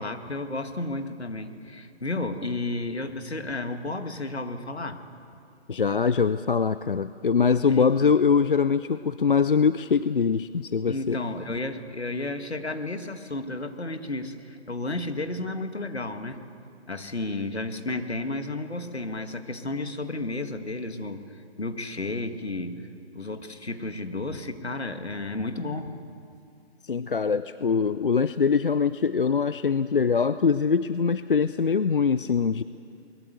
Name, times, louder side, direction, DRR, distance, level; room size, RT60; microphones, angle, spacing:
voice 1, 0.0-5.0 7.7-8.1 10.9-16.4 16.9-22.8 23.1-26.0, left 2 dB, 70° left, 7 dB, 2.0 m, -32 dB
voice 2, 5.7-11.2 26.8-32.6, left 5 dB, 50° left, 14 dB, 0.5 m, -23 dB
23.5 x 21.5 x 8.2 m, 2.5 s
figure-of-eight pair, 145°, 33 cm